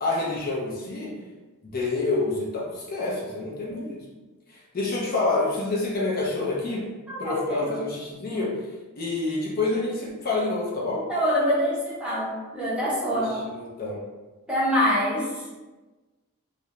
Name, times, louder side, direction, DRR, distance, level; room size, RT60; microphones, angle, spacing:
voice 1, 0.0-1.1 1.7-4.0 4.5-6.9 7.2-8.6 9.0-11.0 13.1-14.0, left 2 dB, 40° left, -4 dB, 0.5 m, -28 dB
voice 2, 7.1-7.8 11.1-13.5 14.5-15.4, equal, 5° right, -8 dB, 0.6 m, -25 dB
2.4 x 2.1 x 2.9 m, 1.2 s
head